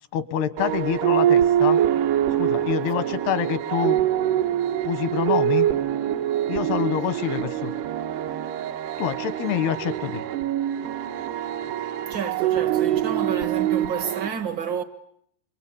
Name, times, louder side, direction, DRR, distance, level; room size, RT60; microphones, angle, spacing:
voice 1, 0.1-1.8 2.3-4.0 4.8-5.7 6.5-7.7 9.0-10.2, left 9 dB, 85° left, 3.3 m, -26 dB
sound 1, 0.6-14.3, right 11 dB, 85° right, 3.3 m, -24 dB
voice 2, 12.1-14.8, right 7 dB, 65° right, 1.1 m, -30 dB
28.0 x 24.0 x 8.8 m
omnidirectional pair, 4.6 m